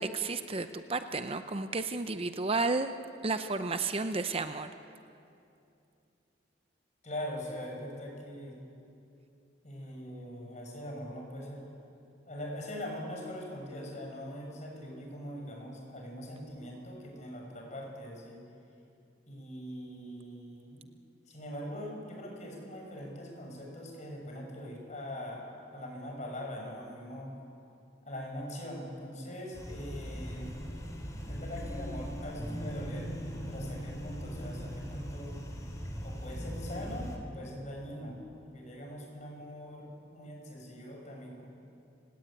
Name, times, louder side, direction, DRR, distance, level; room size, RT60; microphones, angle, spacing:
voice 1, 0.0-2.9 3.2-4.7, right 3 dB, 30° right, 9 dB, 0.7 m, -32 dB
voice 2, 7.0-8.6 9.6-11.7 12.3-18.4 19.3-20.8 21.3-25.5 25.7-27.4 28.1-30.5 31.3-33.1 33.5-35.4 36.0-38.2 38.5-41.5, equal, 40° left, 0 dB, 6.9 m, -42 dB
sound 1, 29.5-37.2, equal, 20° left, 3.4 m, -39 dB
29.5 x 18.0 x 9.1 m, 2.6 s
head